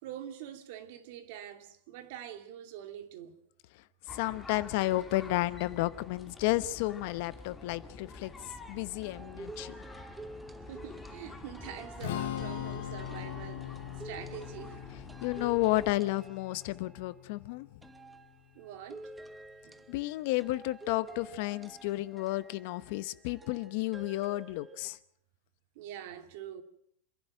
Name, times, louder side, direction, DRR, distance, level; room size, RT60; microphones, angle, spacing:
voice 1, 0.0-3.4 10.7-13.8 14.0-14.9 18.5-19.1 19.6-19.8 25.7-26.6, right 10 dB, 60° right, 2.6 m, -45 dB
voice 2, 4.1-8.3 8.7-9.8 15.2-17.7 19.9-25.0, left 18 dB, 55° left, 0.9 m, -32 dB
sound 1, 4.1-16.0, left 3 dB, 10° left, 2.1 m, -48 dB
sound 2, 9.0-17.2 17.8-25.0, right 2 dB, 10° right, 1.1 m, -50 dB
Strum, 12.0-18.3, left 12 dB, 75° left, 1.6 m, -41 dB
27.0 x 11.0 x 9.1 m
supercardioid pair, 150°, 0 cm